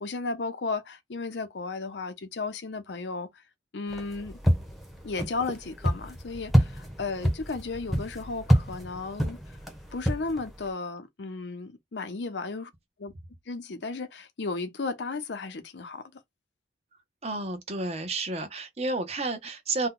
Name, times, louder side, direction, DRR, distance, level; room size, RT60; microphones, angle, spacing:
voice 1, 0.0-3.4 3.7-4.4 5.0-9.6 9.9-12.7 13.0-13.1 13.5-16.1, left 3 dB, 80° left, 0.7 m, -34 dB
sound 1, 3.9-10.7, equal, ahead, 0.8 m, -28 dB
voice 2, 17.2-19.9, right 2 dB, 35° right, 0.7 m, -31 dB
2.7 x 2.2 x 3.7 m
head